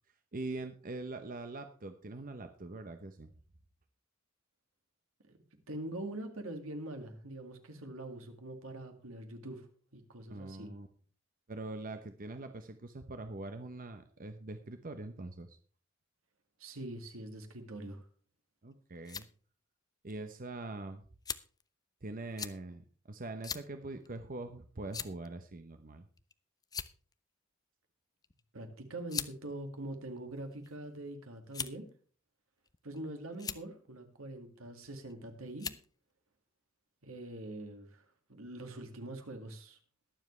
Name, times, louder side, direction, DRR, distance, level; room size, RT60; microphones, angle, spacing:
voice 1, 0.3-3.3 10.3-10.9 11.5-15.6 18.6-19.3 20.0-21.0 22.0-26.1, right 2 dB, 40° right, 7 dB, 0.8 m, -43 dB
voice 2, 5.3-9.7 9.9-10.7 16.6-18.0 28.5-31.9 32.8-35.7 37.0-38.0 38.3-39.8, right 1 dB, 80° right, 5 dB, 2.1 m, -44 dB
sound 1, 18.7-19.3 20.1-20.2 21.3-21.6 22.4-22.6 23.4-23.7 24.0-24.2 24.9-25.3 26.2-26.3 26.6-27.1 28.2-28.4 29.1-29.3 30.2-30.7 31.5-31.9 32.7-33.0 33.3-33.6 34.8-35.1 35.6-35.9, left 6 dB, 20° left, 0.5 m, -40 dB
21.5 x 7.3 x 3.3 m, 0.42 s
head